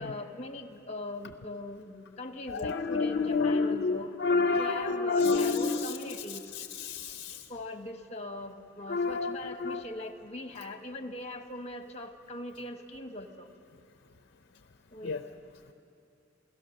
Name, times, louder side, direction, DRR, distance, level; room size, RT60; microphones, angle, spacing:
voice 1, 0.0-4.2 4.5-6.5 7.5-13.5 14.9-15.2, left 2 dB, 35° left, 7 dB, 1.2 m, -41 dB
voice 2, 2.5-6.0 6.5-7.5 8.9-9.8 15.0-15.2, left 4 dB, 60° left, 8 dB, 0.6 m, -29 dB
27.5 x 17.0 x 6.4 m, 2.6 s
head